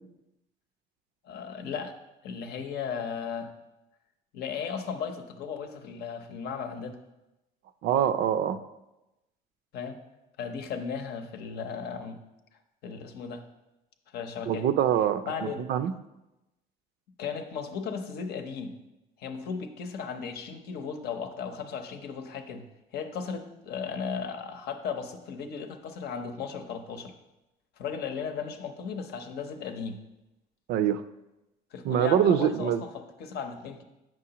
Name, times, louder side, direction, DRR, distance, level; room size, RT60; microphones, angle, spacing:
voice 1, 1.2-2.0 2.2-3.5 4.3-7.0 9.7-10.0 10.4-12.2 12.8-13.4 14.1-14.7 15.3-15.7 17.2-18.8 19.2-27.1 27.8-30.0 31.7-33.8, left 6 dB, 70° left, 6 dB, 0.7 m, -36 dB
voice 2, 7.8-8.6 14.5-15.9 30.7-31.0 31.8-32.8, right 9 dB, 70° right, 12 dB, 0.4 m, -24 dB
7.7 x 6.1 x 2.9 m, 0.97 s
cardioid pair, 110°, 17 cm